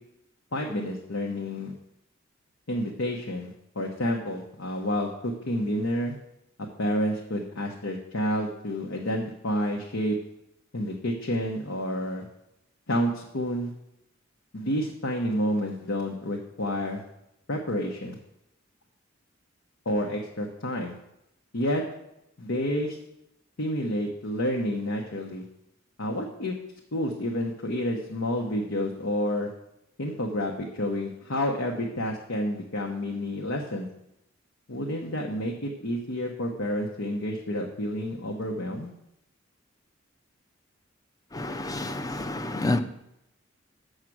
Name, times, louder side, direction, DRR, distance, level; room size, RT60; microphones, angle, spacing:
voice 1, 0.5-1.7 2.7-6.2 6.8-10.2 10.7-12.3 12.9-13.7 14.5-17.0 17.5-18.2 19.8-20.9 21.5-21.8 22.4-23.0 23.6-25.4 26.0-26.5 26.9-29.5 30.0-33.9 34.7-38.9, equal, 80° left, 1.0 m, -29 dB
voice 2, 41.3-42.8, left 2 dB, 20° left, 0.5 m, -29 dB
7.4 x 6.5 x 6.1 m
head